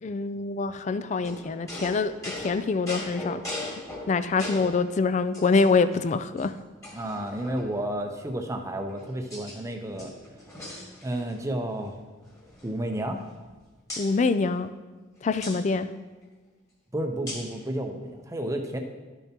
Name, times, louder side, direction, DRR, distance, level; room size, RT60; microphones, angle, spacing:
voice 1, 0.0-3.6 4.1-6.5 14.0-14.7 15.2-15.9, left 4 dB, 35° left, 13 dB, 0.3 m, -25 dB
sound 1, 1.2-4.8 5.3-6.0 6.4-6.5 6.8-7.9 8.6-9.6 9.9-11.4 11.7-11.9 12.2-13.5 13.9-14.1 15.4-15.6 17.3-17.6, left 1 dB, 15° left, 1.7 m, -39 dB
voice 2, 6.9-10.1 11.0-12.0 12.6-13.2 16.9-18.8, right 1 dB, 15° right, 4 dB, 0.6 m, -31 dB
12.0 x 6.9 x 2.9 m, 1.3 s
head